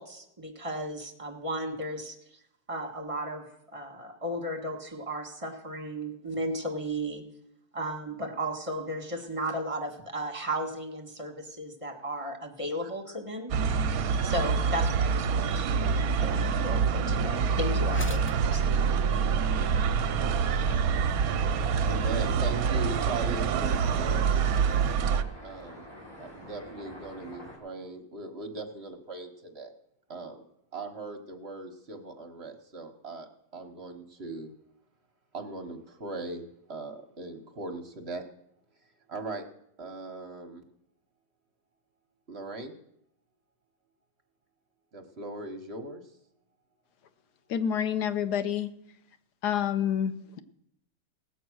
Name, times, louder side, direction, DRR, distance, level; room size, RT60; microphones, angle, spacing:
voice 1, 0.0-2.2 2.7-7.2 7.7-13.6 13.8-18.9, right 1 dB, 20° right, 3 dB, 1.7 m, -35 dB
sound 1, 13.5-25.2, right 6 dB, 70° right, 1.1 m, -26 dB
sound 2, 17.9-24.9, equal, 15° left, 0.5 m, -46 dB
sound 3, 19.3-27.6, equal, 30° left, 4.7 m, -47 dB
voice 2, 21.4-24.2 25.4-25.9 26.2-29.7 30.1-30.4 30.7-33.3 33.5-34.5 35.3-38.2 39.1-39.4 39.8-40.6 42.3-42.8 44.9-46.1, right 2 dB, 45° right, 6 dB, 1.2 m, -39 dB
voice 3, 47.5-48.7 49.4-50.4, left 9 dB, 85° left, 11 dB, 1.4 m, -28 dB
18.0 x 8.0 x 6.2 m, 0.75 s
omnidirectional pair, 1.7 m